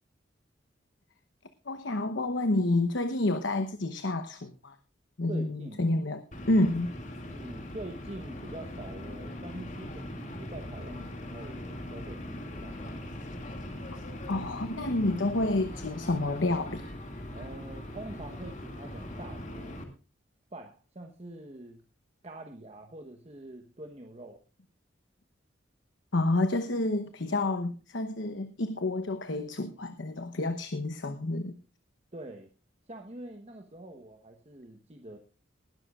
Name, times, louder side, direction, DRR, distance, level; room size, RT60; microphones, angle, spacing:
voice 1, 1.7-4.8 5.2-6.9 13.9-14.0 14.3-16.9 26.1-31.6, left 2 dB, 75° left, 9 dB, 1.0 m, -29 dB
voice 2, 5.3-5.9 7.3-12.9 17.3-19.9 20.5-21.8 22.2-24.4 32.1-32.5 32.9-35.2, right 1 dB, 35° right, 4 dB, 1.1 m, -45 dB
sound 1, 6.3-19.8, left 1 dB, 40° left, 2.3 m, -40 dB
20.0 x 12.0 x 2.4 m, 0.32 s
head